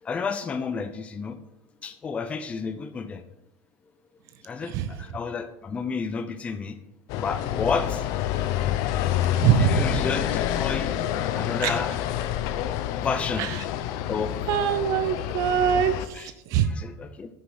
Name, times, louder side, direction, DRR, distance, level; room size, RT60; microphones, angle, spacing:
voice 1, 0.0-1.4 1.8-3.2 4.4-6.8 7.2-8.2 9.5-10.9 11.2-12.0 13.0-13.5 14.1-14.4 16.1-16.3 16.6-17.3, left 5 dB, 15° left, 8 dB, 0.6 m, -31 dB
sound 1, 7.1-16.1, left 11 dB, 55° left, 0.7 m, -28 dB
voice 2, 9.4-9.8 11.6-11.7 13.4-13.5 14.5-16.7, right 9 dB, 50° right, 11 dB, 0.7 m, -23 dB
9.6 x 6.8 x 6.3 m, 0.91 s
cardioid pair, 160°, 7 cm